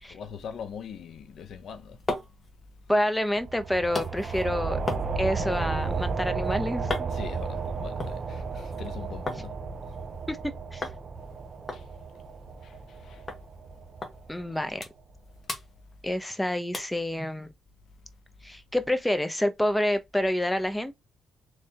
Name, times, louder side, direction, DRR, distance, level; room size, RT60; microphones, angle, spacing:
voice 1, 0.1-2.0 4.3-4.4 7.1-9.5 11.7-11.8 12.6-13.3, left 7 dB, 65° left, 0.6 m, -42 dB
sound 1, 1.6-9.5 9.8-10.4 10.8-11.0 11.3-11.4 11.7-13.0 13.3-13.4 14.0-14.1 14.5-15.2 15.4-16.4 16.7-17.0 17.5-17.6, left 2 dB, 25° left, 1.3 m, -38 dB
voice 2, 2.9-4.8 5.1-7.1 10.3-10.8 14.3-14.8 16.0-17.5 18.4-20.9, left 1 dB, 5° left, 0.7 m, -28 dB
sound 2, 3.4-14.6, right 4 dB, 40° right, 0.5 m, -33 dB
3.4 x 3.2 x 2.8 m
cardioid pair, 90°, 0 cm